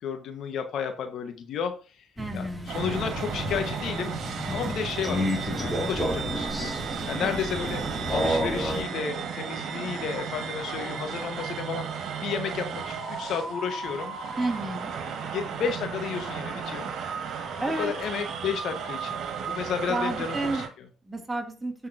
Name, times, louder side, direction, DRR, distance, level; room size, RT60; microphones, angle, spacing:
voice 1, 0.0-2.1 2.3-4.2 4.5-7.8 8.1-14.2 15.3-16.9 17.8-19.2 19.4-20.6, left 7 dB, 65° left, 6 dB, 1.6 m, -32 dB
Crow, 2.2-8.8, equal, 10° left, 3.5 m, -31 dB
voice 2, 2.2-2.7 7.2-7.4 14.4-14.9 17.6-17.9 19.9-20.6 21.1-21.7, right 2 dB, 20° right, 2 dB, 3.0 m, -30 dB
sound 1, 2.7-20.7, right 6 dB, 60° right, 2.2 m, -34 dB
13.5 x 5.7 x 2.9 m, 0.34 s
hypercardioid pair, 55°, 0 cm